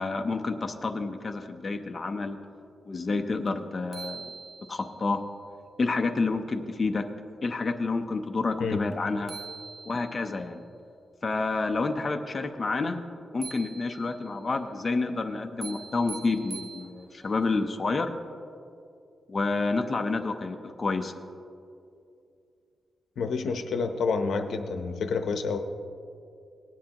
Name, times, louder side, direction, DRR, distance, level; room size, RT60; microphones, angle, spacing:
voice 1, 0.0-2.4 2.9-4.3 4.7-5.2 5.8-7.1 7.4-9.3 9.9-10.6 11.2-13.0 13.3-18.1 19.3-21.1, left 3 dB, 30° left, 4 dB, 0.6 m, -29 dB
sound 1, 3.5-3.6 3.9-5.0 8.9-9.0 9.3-10.3 13.4-14.3 15.6-17.3, right 5 dB, 40° right, 0.7 m, -43 dB
voice 2, 23.2-25.6, left 4 dB, 80° left, 7 dB, 0.7 m, -28 dB
18.5 x 10.0 x 2.9 m, 2.5 s
wide cardioid pair, 135°, 0 cm